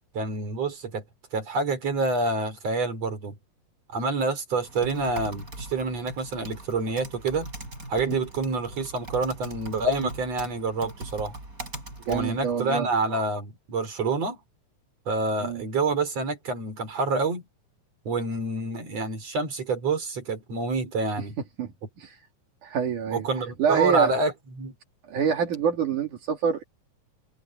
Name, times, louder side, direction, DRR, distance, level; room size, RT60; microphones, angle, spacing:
voice 1, 0.1-1.0 1.3-3.3 3.9-7.5 7.9-11.3 12.1-14.4 15.1-17.4 18.1-21.4 23.1-24.7, right 3 dB, 55° right, 5.7 m, -27 dB
Typing, 4.6-12.8, right 2 dB, 25° right, 8.1 m, -41 dB
voice 2, 12.1-12.9 15.4-15.6 21.6-21.7 22.0-22.2 22.6-23.3 23.6-24.2 25.1-26.6, right 7 dB, 75° right, 4.1 m, -26 dB
omnidirectional pair, 3.6 m